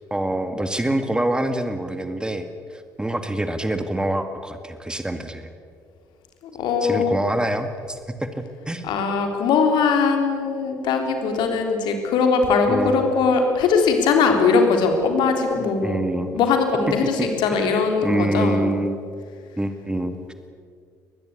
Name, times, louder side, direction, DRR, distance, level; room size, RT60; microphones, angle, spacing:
voice 1, 0.1-5.5 6.8-8.9 12.7-13.1 15.6-16.3 17.2-19.0 19.6-20.2, right 1 dB, 10° right, 8 dB, 2.0 m, -26 dB
voice 2, 6.4-7.2 8.8-16.0 16.3-18.7, left 5 dB, 60° left, 4 dB, 3.6 m, -20 dB
23.0 x 20.0 x 8.3 m, 2.2 s
figure-of-eight pair, 50°, 9 cm